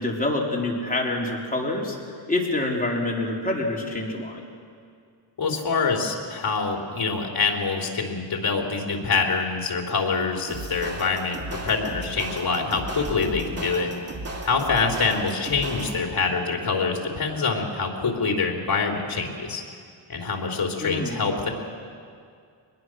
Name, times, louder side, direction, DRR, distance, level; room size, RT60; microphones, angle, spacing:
voice 1, 0.0-2.0 2.3-4.4 20.8-21.2, left 2 dB, 15° left, -2 dB, 4.0 m, -26 dB
voice 2, 5.4-13.9 14.4-19.6 20.1-21.5, left 4 dB, 50° left, 1 dB, 3.7 m, -25 dB
sound 1, 10.5-16.2, right 2 dB, 30° right, 2.8 m, -36 dB
24.5 x 21.0 x 6.4 m, 2.2 s
cardioid pair, 95°, 47 cm